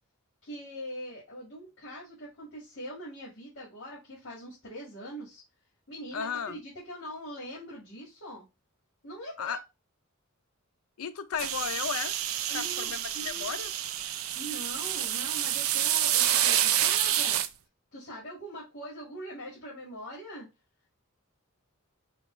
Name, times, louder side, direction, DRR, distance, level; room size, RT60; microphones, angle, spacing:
voice 1, 0.4-5.4 5.9-8.5 9.0-9.6 12.5-13.6 14.3-17.4 17.9-20.5, equal, 60° left, 2.0 m, -42 dB
voice 2, 6.1-6.6 9.4-9.6 11.0-12.2 12.5-13.7, left 7 dB, 85° left, 0.5 m, -34 dB
sound 1, 11.4-17.5, right 11 dB, 75° right, 0.4 m, -28 dB
5.1 x 2.4 x 4.3 m
head